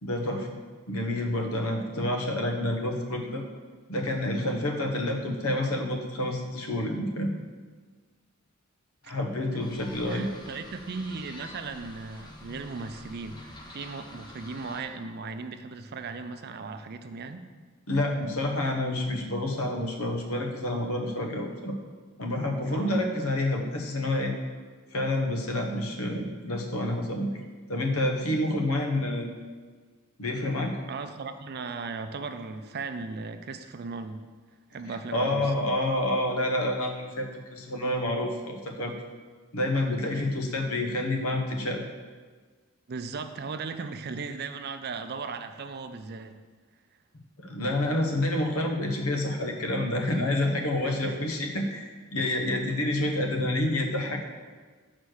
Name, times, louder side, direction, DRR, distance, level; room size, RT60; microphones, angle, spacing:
voice 1, 0.0-0.5 0.9-3.4 3.9-7.3 9.1-10.3 17.9-21.8 22.2-24.3 24.9-27.3 27.7-29.3 30.2-30.7 35.1-38.9 39.5-41.8 47.4-54.2, left 1 dB, 85° left, 2 dB, 1.0 m, -28 dB
sound 1, 9.6-14.8, left 1 dB, 20° left, 0.8 m, -47 dB
voice 2, 10.1-17.4 22.7-23.0 30.9-34.2 34.7-35.7 40.1-40.3 42.9-46.4 50.8-51.2, right 4 dB, 45° right, 8 dB, 0.5 m, -37 dB
6.4 x 4.1 x 6.3 m, 1.5 s
head